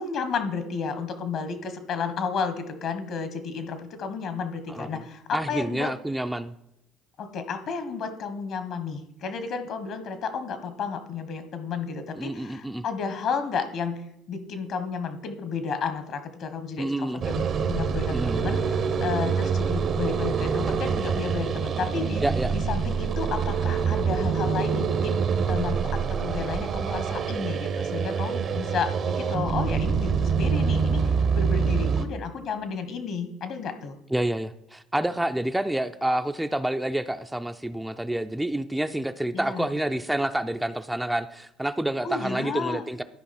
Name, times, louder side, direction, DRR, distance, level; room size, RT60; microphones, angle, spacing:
voice 1, 0.0-5.9 7.2-14.0 14.3-22.2 22.5-34.0 39.3-39.7 42.0-42.9, left 5 dB, 60° left, 9 dB, 1.2 m, -32 dB
voice 2, 4.7-5.0 5.3-6.5 12.2-12.8 16.8-17.2 18.1-18.5 22.2-22.5 34.1-43.0, right 1 dB, 5° right, 8 dB, 0.4 m, -28 dB
sound 1, 17.2-32.1, right 6 dB, 50° right, 0.8 m, -26 dB
12.0 x 5.1 x 4.3 m, 0.83 s
hypercardioid pair, 70°, 0 cm